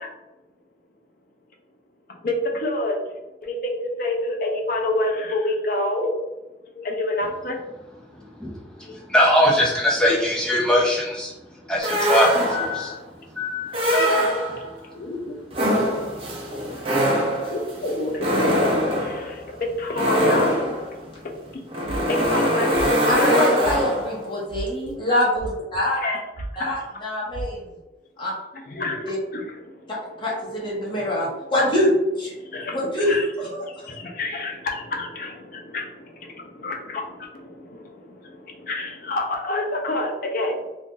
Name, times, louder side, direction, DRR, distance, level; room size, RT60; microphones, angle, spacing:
voice 1, 2.2-3.0 3.4-6.1 6.6-7.6 8.8-9.0 14.9-15.4 17.5-20.6 21.2-21.6 22.1-23.5 26.0-26.2 26.6-26.8 28.5-29.9 30.8-30.9 32.3-33.3 33.7-40.6, left 1 dB, 50° left, 1 dB, 0.6 m, -28 dB
voice 2, 8.2-11.3 11.6-13.0 13.3-14.0, equal, 5° left, -4 dB, 0.7 m, -22 dB
sound 1, 11.8-12.9 13.7-14.8 15.5-24.2, equal, 30° right, 0.7 m, -23 dB
sound 2, 21.9-22.3 22.7-23.1 23.6-24.1 24.5-24.9 25.4-26.0 26.3-26.8 27.3-27.5, right 2 dB, 80° right, 0.5 m, -33 dB
voice 3, 23.1-26.1 26.6-27.6 28.2-28.3 29.1-29.2 29.9-31.9 32.2-32.3 32.7-33.1 33.5-33.6, left 1 dB, 30° left, -6 dB, 1.2 m, -24 dB
2.6 x 2.6 x 3.7 m, 1.0 s
head